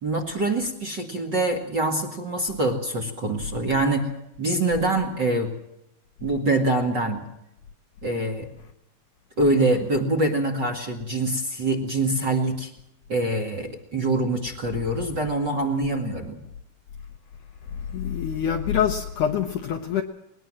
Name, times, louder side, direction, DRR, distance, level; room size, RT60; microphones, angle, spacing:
voice 1, 0.0-4.1 4.4-5.5 6.2-7.2 8.0-8.5 9.4-12.7 13.1-16.4, right 2 dB, 35° right, 1.9 m, -24 dB
voice 2, 17.7-20.0, left 8 dB, 70° left, 2.0 m, -25 dB
20.5 x 19.5 x 7.6 m
omnidirectional pair, 4.6 m